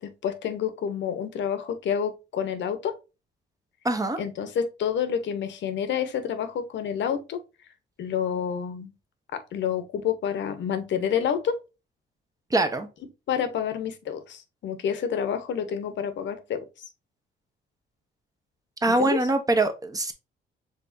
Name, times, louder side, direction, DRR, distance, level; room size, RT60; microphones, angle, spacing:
voice 1, 0.0-3.0 4.2-7.4 8.0-8.9 9.3-11.6 13.3-16.6 18.9-19.2, left 8 dB, 65° left, 0.8 m, -28 dB
voice 2, 3.8-4.2 12.5-12.9 18.8-20.1, right 2 dB, 15° right, 0.9 m, -23 dB
4.9 x 3.5 x 2.6 m
cardioid pair, 90°, 20 cm